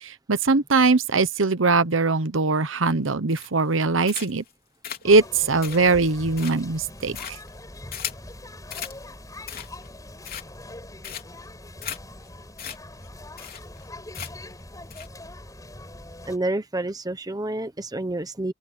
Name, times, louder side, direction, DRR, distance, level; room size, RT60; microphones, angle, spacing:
voice 1, 0.0-4.4 5.0-7.4, right 3 dB, 80° right, 1.0 m, -21 dB
sound 1, 3.3-3.7 4.0-4.5 4.8-8.3 8.7-9.0 9.3-9.9 10.2-10.7 11.0-11.4 11.8-12.0 12.3-12.4 12.6-12.8 13.0-13.1 13.4-13.8 14.1-14.5 14.9-15.1, left 9 dB, 50° left, 3.2 m, -36 dB
sound 2, 5.0-16.4, left 1 dB, 20° left, 5.3 m, -42 dB
voice 2, 16.3-18.5, right 1 dB, 20° right, 1.1 m, -29 dB
open air
head